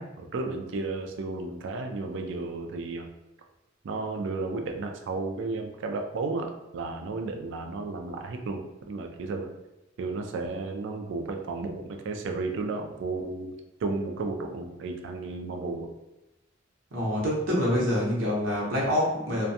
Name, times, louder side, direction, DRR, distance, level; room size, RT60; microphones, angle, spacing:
voice 1, 0.0-3.1 3.8-8.6 8.9-9.5 10.0-13.5 13.8-15.9, right 3 dB, 65° right, 4 dB, 0.3 m, -33 dB
voice 2, 16.9-19.5, equal, 85° right, -4 dB, 0.7 m, -26 dB
2.5 x 2.2 x 2.6 m, 0.97 s
head